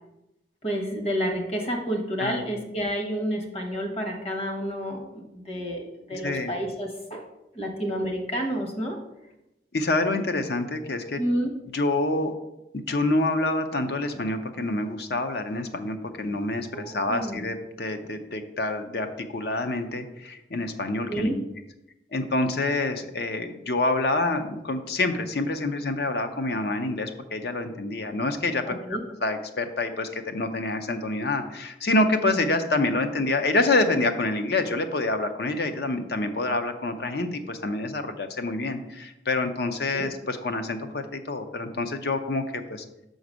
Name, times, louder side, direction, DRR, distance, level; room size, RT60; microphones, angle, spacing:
voice 1, 0.6-7.2 7.5-9.0 11.2-11.5 16.7-17.4 21.1-21.4 28.7-29.0 39.9-40.1, equal, 35° left, 2 dB, 1.1 m, -30 dB
voice 2, 6.1-6.5 9.7-11.2 11.7-12.4 12.7-21.4 22.1-28.7 29.2-42.8, left 2 dB, 60° left, 8 dB, 0.6 m, -27 dB
6.0 x 3.9 x 6.2 m, 0.91 s
head